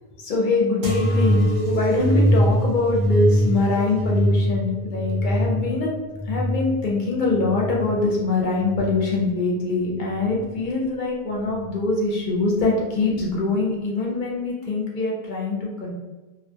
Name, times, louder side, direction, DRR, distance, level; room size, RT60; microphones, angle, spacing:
voice 1, 0.2-5.9 6.3-15.9, left 3 dB, 55° left, -3 dB, 0.7 m, -23 dB
sound 1, 0.8-8.0 8.6-9.3 10.1-10.6 11.6-11.7, equal, 75° right, 0.9 m, -23 dB
2.4 x 2.2 x 2.7 m, 1.1 s
omnidirectional pair, 1.1 m